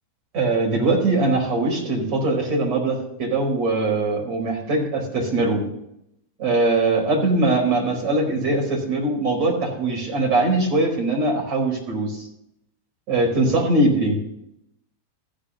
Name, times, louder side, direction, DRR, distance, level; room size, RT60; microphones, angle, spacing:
voice 1, 0.3-5.6 6.4-12.2 13.1-14.2, right 2 dB, 40° right, -1 dB, 4.5 m, -21 dB
15.0 x 5.1 x 6.2 m, 0.79 s
figure-of-eight pair, 90°, 0 cm